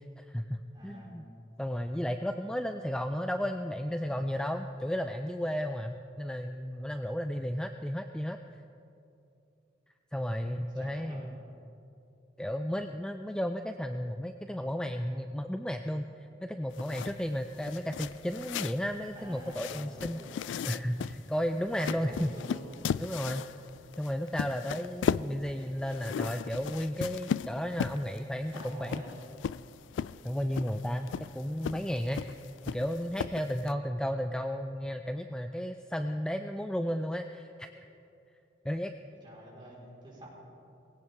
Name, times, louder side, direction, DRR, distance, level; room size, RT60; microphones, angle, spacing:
voice 1, 0.2-1.2 1.6-8.4 10.1-11.4 12.4-22.3 23.0-23.5 24.0-29.0 30.2-32.3 32.7-37.7 38.6-38.9, equal, 5° left, 7 dB, 0.3 m, -33 dB
voice 2, 0.7-1.2 10.2-10.4 10.7-11.3 19.1-20.4 21.8-22.8 28.5-29.1 39.2-40.3, right 1 dB, 25° right, -5 dB, 4.5 m, -47 dB
sound 1, 16.7-33.7, left 7 dB, 90° left, 0.3 m, -37 dB
20.0 x 17.0 x 3.6 m, 2.7 s
head